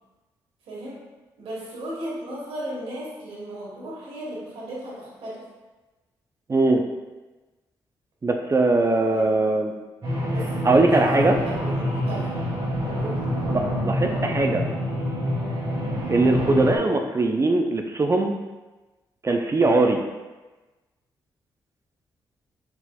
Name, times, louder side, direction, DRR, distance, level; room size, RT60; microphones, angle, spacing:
voice 1, 0.7-1.0 1.4-5.4 9.1-9.3 10.3-12.3 13.0-13.2, right 1 dB, 75° right, -5 dB, 1.2 m, -35 dB
voice 2, 6.5-6.8 8.2-9.7 10.6-11.3 13.5-14.6 16.1-18.3 19.2-20.0, right 2 dB, 30° right, 4 dB, 0.4 m, -21 dB
sound 1, 10.0-16.8, equal, 50° right, 1.4 m, -26 dB
4.2 x 4.0 x 2.3 m, 1.2 s
supercardioid pair, 50°, 10 cm